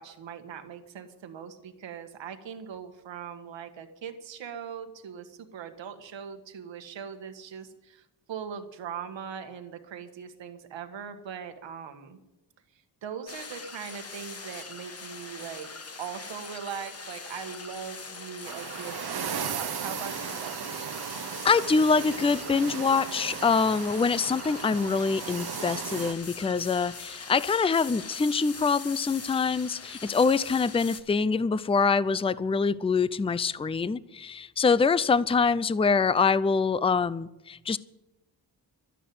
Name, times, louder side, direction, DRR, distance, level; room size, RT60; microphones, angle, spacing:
voice 1, 0.0-12.2 12.7-15.7 16.0-20.7, right 7 dB, 90° right, 7 dB, 1.7 m, -40 dB
sound 1, 13.3-31.0, left 4 dB, 35° left, 1.5 m, -42 dB
sound 2, 18.4-26.1, right 8 dB, 60° right, 1.0 m, -36 dB
voice 2, 21.4-37.8, left 5 dB, 15° left, 18 dB, 0.4 m, -25 dB
12.5 x 10.0 x 9.5 m, 0.98 s
cardioid pair, 105°, 43 cm